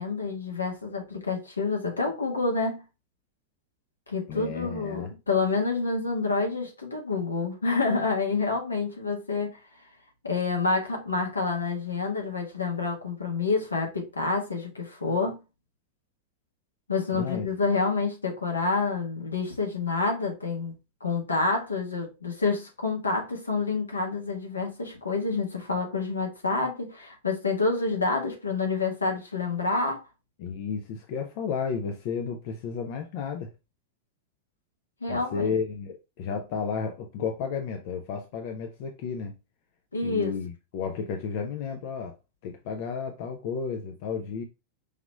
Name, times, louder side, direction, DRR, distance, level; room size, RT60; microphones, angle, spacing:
voice 1, 0.0-2.8 4.1-9.6 10.2-15.4 16.9-20.7 21.0-30.0 35.0-35.5 39.9-40.3, left 4 dB, 80° left, 1.2 m, -28 dB
voice 2, 4.3-5.1 17.1-17.5 30.4-33.5 35.1-39.4 40.0-42.1 42.4-44.4, left 6 dB, 50° left, 0.5 m, -32 dB
4.8 x 2.9 x 2.2 m
figure-of-eight pair, 90°, 0 cm